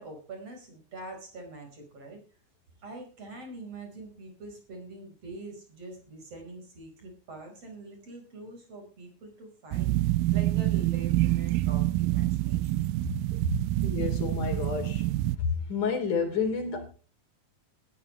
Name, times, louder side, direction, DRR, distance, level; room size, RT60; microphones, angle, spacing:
voice 1, 0.0-2.2 2.8-9.9 10.3-13.1 13.4-13.6, right 2 dB, 45° right, 3 dB, 5.8 m, -42 dB
sound 1, 9.7-15.4, right 16 dB, 80° right, 2.4 m, -27 dB
voice 2, 13.8-15.1 15.4-16.9, left 6 dB, 60° left, 5 dB, 4.7 m, -30 dB
19.5 x 11.5 x 3.2 m, 0.38 s
omnidirectional pair, 4.1 m